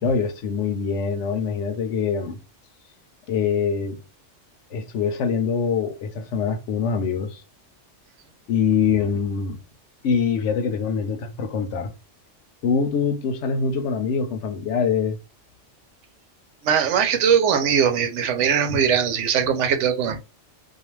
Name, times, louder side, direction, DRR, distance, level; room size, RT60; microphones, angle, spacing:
voice 1, 0.0-2.4 3.3-4.0 4.7-7.4 8.5-9.6 10.0-11.9 12.6-15.2, left 6 dB, 75° left, 0.9 m, -24 dB
voice 2, 16.6-20.2, right 7 dB, 75° right, 0.9 m, -20 dB
2.4 x 2.2 x 3.0 m
omnidirectional pair, 1.3 m